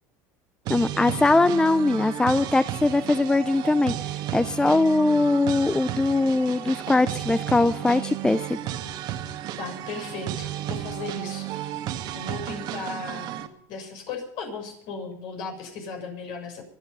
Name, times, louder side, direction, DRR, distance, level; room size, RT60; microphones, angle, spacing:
sound 1, 0.6-13.5, right 12 dB, 60° right, 1.6 m, -33 dB
voice 1, 0.7-3.9 4.3-8.6, left 2 dB, 10° left, 15 dB, 0.5 m, -21 dB
voice 2, 9.6-11.7 12.1-13.4 13.7-16.6, left 4 dB, 65° left, 3 dB, 6.6 m, -36 dB
25.0 x 9.0 x 5.5 m, 0.68 s
supercardioid pair, 105°, 8 cm